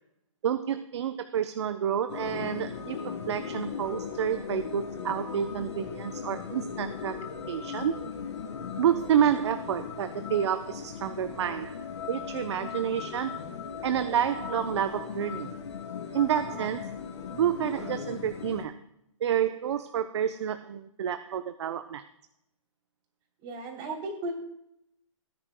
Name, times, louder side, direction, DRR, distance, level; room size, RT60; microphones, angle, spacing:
voice 1, 0.4-3.0 3.3-7.2 7.5-8.0 8.8-13.4 13.8-15.5 16.1-16.9 17.3-18.7 19.2-22.0, right 9 dB, 55° right, 10 dB, 0.7 m, -29 dB
sound 1, 2.1-18.6, left 6 dB, 55° left, 3.0 m, -38 dB
voice 2, 23.4-24.3, right 1 dB, 25° right, 1 dB, 3.1 m, -36 dB
18.5 x 9.6 x 2.2 m, 0.79 s
hypercardioid pair, 150°, 17 cm